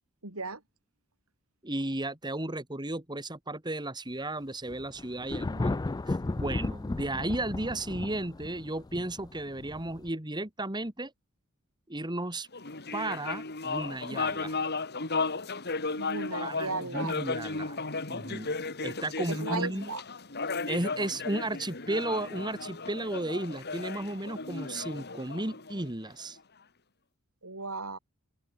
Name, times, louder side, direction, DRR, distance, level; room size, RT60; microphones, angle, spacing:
voice 1, 0.2-0.6 16.0-17.1 19.3-20.0 27.4-28.0, right 3 dB, 80° right, 6.3 m, -36 dB
voice 2, 1.6-5.7 6.1-11.1 11.9-12.5 12.9-14.6 16.4-17.8 18.1-18.5 18.8-19.9 20.7-26.4, right 1 dB, 20° right, 2.5 m, -34 dB
Thunder, 4.7-10.1, left 2 dB, 20° left, 0.4 m, -34 dB
sound 1, 12.5-26.2, left 4 dB, 50° left, 3.3 m, -35 dB
open air
head